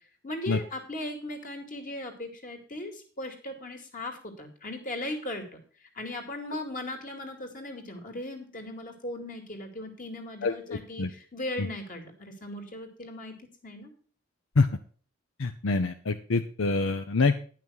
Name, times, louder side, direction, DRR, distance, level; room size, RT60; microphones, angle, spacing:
voice 1, 0.2-5.6 5.9-13.3 13.6-13.9, left 1 dB, 45° left, 4 dB, 2.4 m, -38 dB
voice 2, 10.4-11.1 11.6-11.7 14.6-14.7 15.4-17.4, left 3 dB, 80° left, 8 dB, 0.7 m, -26 dB
10.5 x 6.0 x 6.3 m, 0.41 s
head